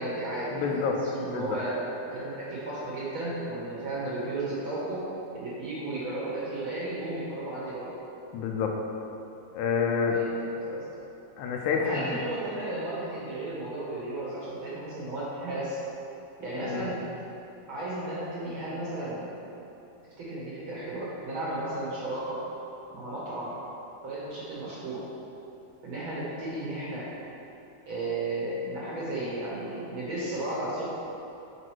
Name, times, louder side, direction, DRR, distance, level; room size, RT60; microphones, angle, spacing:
voice 1, 0.0-1.8 2.1-5.0 5.3-7.9 10.1-10.8 11.7-15.8 16.4-17.0 17.7-19.3 20.2-22.4 22.9-23.5 24.0-25.0 25.8-27.1 27.9-30.8, right 2 dB, 55° right, -7 dB, 1.7 m, -34 dB
voice 2, 0.5-1.6 8.3-8.8 9.5-10.2 11.4-12.2 16.6-16.9, left 6 dB, 85° left, 1 dB, 2.0 m, -28 dB
6.3 x 5.1 x 4.6 m, 2.9 s
omnidirectional pair, 3.4 m